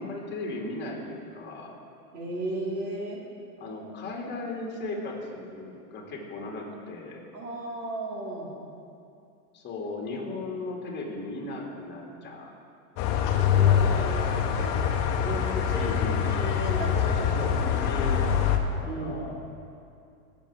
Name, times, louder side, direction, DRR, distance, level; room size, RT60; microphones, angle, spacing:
voice 1, 0.0-1.7 3.6-7.2 9.5-12.5 15.8-16.2 17.0-19.4, left 2 dB, 20° left, -2 dB, 2.5 m, -36 dB
voice 2, 2.1-3.2 7.3-8.5 13.5-14.8 15.1-15.9 16.3-17.6 18.8-19.2, right 1 dB, 85° right, -3 dB, 2.9 m, -35 dB
sound 1, 13.0-18.6, left 8 dB, 45° left, 1.1 m, -24 dB
17.5 x 7.0 x 3.5 m, 2.5 s
hypercardioid pair, 115°, 46 cm